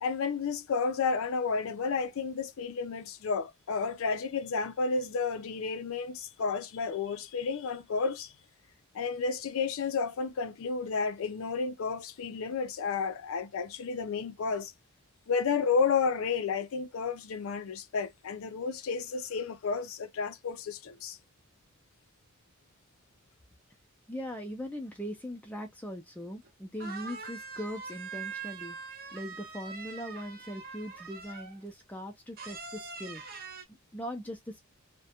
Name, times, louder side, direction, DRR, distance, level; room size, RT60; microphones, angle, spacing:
voice 1, 0.0-8.3 8.9-14.7 15.3-21.2, left 5 dB, 70° left, 0.4 m, -31 dB
voice 2, 24.1-28.8 29.1-33.2 33.7-34.7, equal, 5° left, 0.4 m, -40 dB
sound 1, 26.4-26.5 26.8-31.6 32.4-33.7, right 5 dB, 45° right, 0.6 m, -43 dB
2.3 x 2.1 x 2.7 m
head